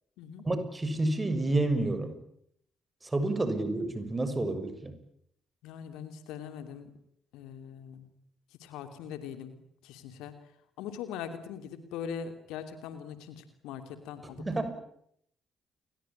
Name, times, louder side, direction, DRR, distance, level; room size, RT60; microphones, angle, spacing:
voice 1, 0.4-2.2 3.0-4.9 14.4-14.7, right 2 dB, 25° right, 10 dB, 6.6 m, -29 dB
voice 2, 5.6-6.9 7.3-8.1 8.6-10.3 10.8-14.4, left 8 dB, 65° left, 9 dB, 2.8 m, -41 dB
29.5 x 21.5 x 8.9 m, 0.72 s
figure-of-eight pair, 40°, 0 cm